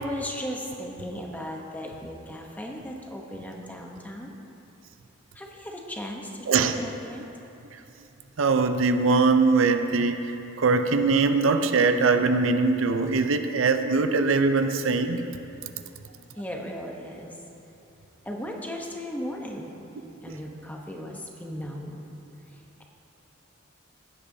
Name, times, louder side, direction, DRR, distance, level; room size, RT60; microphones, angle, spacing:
voice 1, 0.0-4.3 5.3-7.3 16.4-17.3 18.2-19.7 20.2-22.1, equal, 10° left, 0 dB, 0.9 m, -36 dB
voice 2, 8.4-10.2 10.6-15.3, right 4 dB, 75° right, 7 dB, 0.5 m, -22 dB
15.5 x 10.0 x 2.7 m, 2.8 s
head